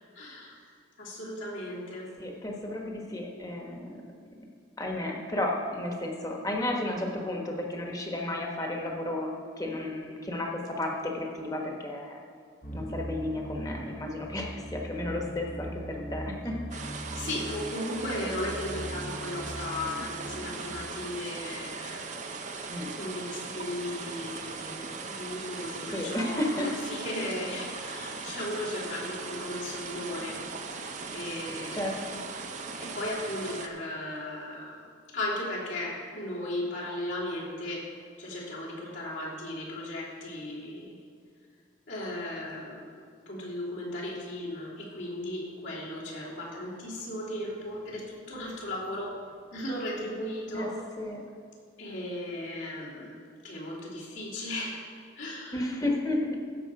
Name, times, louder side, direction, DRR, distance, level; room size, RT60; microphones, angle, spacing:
voice 1, 0.1-0.6 1.0-2.1 17.1-22.2 23.0-30.4 30.7-30.8 31.1-32.0 32.8-34.9 35.1-37.9 38.2-41.0 41.9-42.9 43.2-49.1 49.5-50.8 51.8-53.2 53.4-54.8 55.2-55.6, left 1 dB, 70° left, -6 dB, 3.4 m, -36 dB
voice 2, 2.2-4.1 4.8-9.3 9.6-12.2 12.7-16.9 22.7-22.9 25.9-26.7 31.7-32.2 50.5-50.7 51.0-51.2 55.5-56.4, left 1 dB, 20° left, 0 dB, 1.3 m, -33 dB
sound 1, 12.6-20.8, right 1 dB, 40° left, 1.0 m, -40 dB
sound 2, 16.7-33.7, right 4 dB, 35° right, 0.7 m, -39 dB
15.5 x 7.1 x 4.8 m, 2.2 s
head